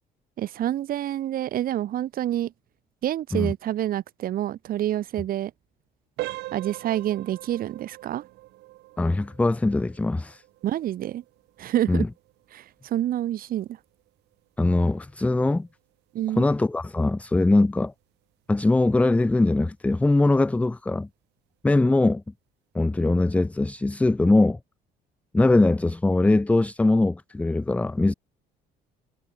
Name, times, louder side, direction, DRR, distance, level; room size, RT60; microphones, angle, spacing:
voice 1, 0.4-2.5 3.0-5.5 6.5-8.2 10.6-11.2 11.6-12.1 12.5-13.7 16.1-16.4, right 12 dB, 60° right, 1.2 m, -27 dB
sound 1, 6.2-16.8 17.2-17.4 18.0-18.1 18.6-18.8, right 18 dB, 85° right, 1.5 m, -43 dB
voice 2, 9.0-10.4 11.9-12.1 14.6-15.7 16.4-17.9 18.5-21.1 21.6-22.2 22.7-24.6 25.3-28.1, left 2 dB, 10° left, 0.4 m, -21 dB
cardioid pair, 110°, 17 cm